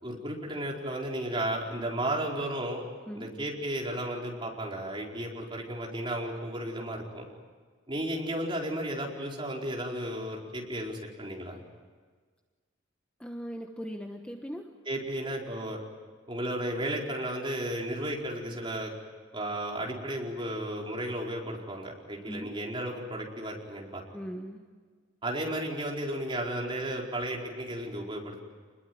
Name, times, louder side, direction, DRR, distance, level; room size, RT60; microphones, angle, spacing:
voice 1, 0.0-2.8 3.1-7.3 7.9-11.6 14.9-15.8 16.3-18.9 19.3-24.0 25.2-28.4, right 1 dB, 25° right, -1 dB, 4.7 m, -34 dB
voice 2, 3.1-3.4 13.2-14.8 22.2-22.5 24.1-24.8, equal, 5° left, 3 dB, 1.3 m, -40 dB
27.5 x 21.5 x 9.5 m, 1.5 s
head